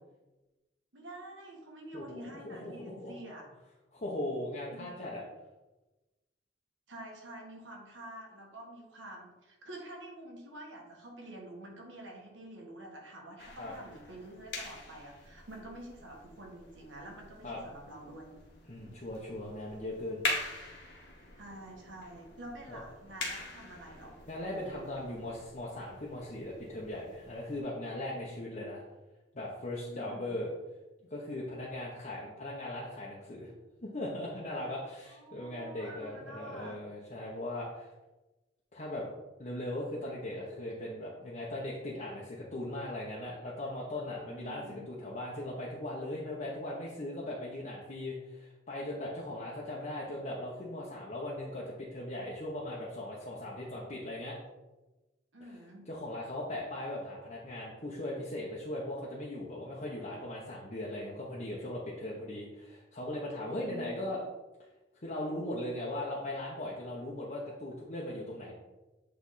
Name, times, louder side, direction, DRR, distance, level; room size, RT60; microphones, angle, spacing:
voice 1, 0.9-3.4 4.7-4.9 6.9-18.4 18.8-18.9 21.4-24.2 29.9-30.4 35.1-36.8 44.3-44.9 55.3-55.9 63.5-64.2, right 1 dB, 85° right, 0 dB, 1.6 m, -48 dB
voice 2, 1.9-3.1 3.9-5.2 13.6-13.7 17.4-17.6 18.7-20.2 22.7-22.8 24.3-28.8 29.3-30.5 31.1-33.5 33.8-37.9 38.7-39.1 39.4-54.4 55.4-55.6 55.9-64.2 65.0-68.5, left 1 dB, 40° left, -5 dB, 1.0 m, -39 dB
sound 1, 13.4-27.6, left 2 dB, 65° left, 1.4 m, -44 dB
8.4 x 3.4 x 4.1 m, 1.1 s
head